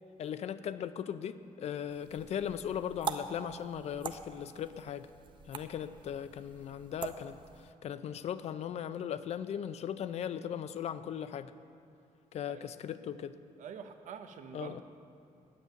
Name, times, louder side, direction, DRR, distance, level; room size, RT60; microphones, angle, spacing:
voice 1, 0.2-5.1 5.5-11.5 12.3-13.3 14.5-14.8, left 9 dB, 50° left, 13 dB, 0.5 m, -38 dB
sound 1, 1.9-7.7, right 6 dB, 35° right, 0.6 m, -44 dB
voice 2, 13.6-14.8, right 7 dB, 65° right, 8 dB, 0.7 m, -46 dB
9.6 x 7.3 x 9.0 m, 2.4 s
cardioid pair, 160°, 14 cm